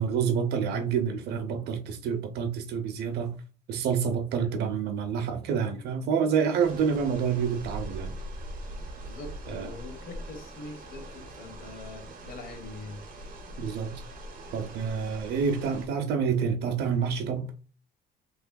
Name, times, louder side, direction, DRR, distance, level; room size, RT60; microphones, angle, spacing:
voice 1, 0.0-3.3 3.7-8.1 9.5-9.7 13.6-14.0 14.5-17.5, right 6 dB, 75° right, 0.8 m, -28 dB
sound 1, 6.6-15.9, right 1 dB, 50° right, 1.0 m, -42 dB
voice 2, 9.0-13.0 14.7-15.0, left 2 dB, 60° left, 1.3 m, -44 dB
3.5 x 3.2 x 2.3 m
cardioid pair, 110°, 17 cm